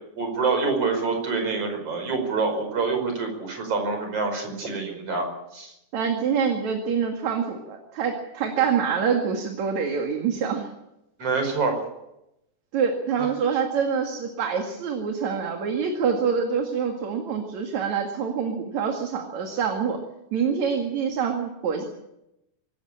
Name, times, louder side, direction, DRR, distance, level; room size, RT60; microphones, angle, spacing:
voice 1, 0.2-5.7 11.2-11.8, right 4 dB, 45° right, 4 dB, 6.1 m, -26 dB
voice 2, 5.9-10.7 12.7-20.0 20.3-21.9, right 6 dB, 65° right, 3 dB, 3.3 m, -26 dB
24.5 x 14.0 x 8.7 m, 0.88 s
omnidirectional pair, 3.6 m